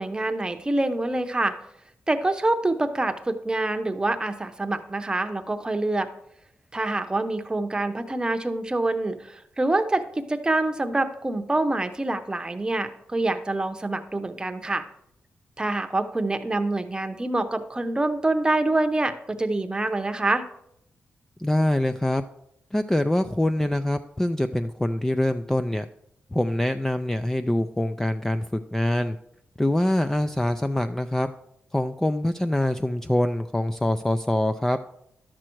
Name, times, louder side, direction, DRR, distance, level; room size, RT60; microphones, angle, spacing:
voice 1, 0.0-1.6 2.1-6.1 6.7-14.8 15.6-20.4, right 2 dB, 20° right, 8 dB, 0.8 m, -26 dB
voice 2, 21.4-22.2 22.7-25.9 26.3-29.2 29.6-31.3 31.7-34.9, left 1 dB, 10° left, 9 dB, 0.3 m, -24 dB
11.5 x 7.5 x 4.5 m, 0.76 s
wide cardioid pair, 110°, 4 cm